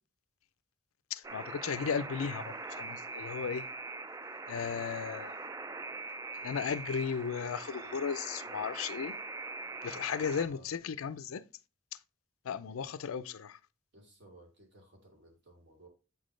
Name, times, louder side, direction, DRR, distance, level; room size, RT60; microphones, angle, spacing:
voice 1, 1.1-3.7 4.5-5.4 6.4-9.2 9.8-11.4 12.5-13.6, left 6 dB, 80° left, 0.4 m, -35 dB
Alarm, 1.2-10.5, right 3 dB, 15° right, 0.3 m, -42 dB
voice 2, 13.9-15.9, right 1 dB, 55° right, 2.3 m, -57 dB
8.3 x 4.1 x 3.1 m
head